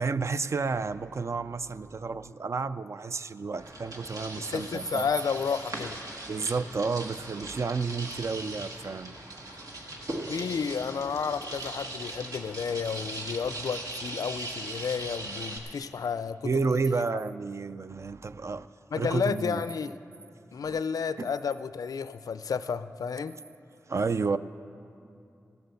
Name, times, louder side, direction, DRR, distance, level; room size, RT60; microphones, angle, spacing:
voice 1, 0.0-5.1 6.3-9.2 16.4-18.7 19.0-19.6 20.6-20.8 21.2-21.3 23.9-24.4, right 4 dB, 50° right, 13 dB, 0.4 m, -31 dB
sound 1, 3.6-15.6, right 2 dB, 70° right, 1.5 m, -39 dB
voice 2, 4.4-6.0 10.3-16.5 16.9-17.0 18.9-20.0 20.5-23.4, left 6 dB, 85° left, 14 dB, 0.4 m, -31 dB
17.0 x 7.8 x 6.9 m, 2.6 s
wide cardioid pair, 80°, 6 cm